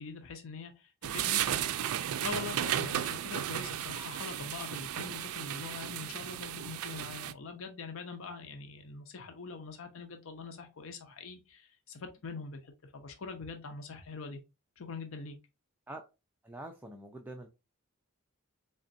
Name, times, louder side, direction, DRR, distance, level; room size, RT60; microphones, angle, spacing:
voice 1, 0.0-1.4 2.2-14.4 14.8-15.4, left 4 dB, 65° left, 0.6 m, -43 dB
sound 1, 1.0-7.3, right 10 dB, 75° right, 0.3 m, -34 dB
voice 2, 16.4-17.5, right 1 dB, 10° right, 0.4 m, -45 dB
4.0 x 3.3 x 2.6 m
head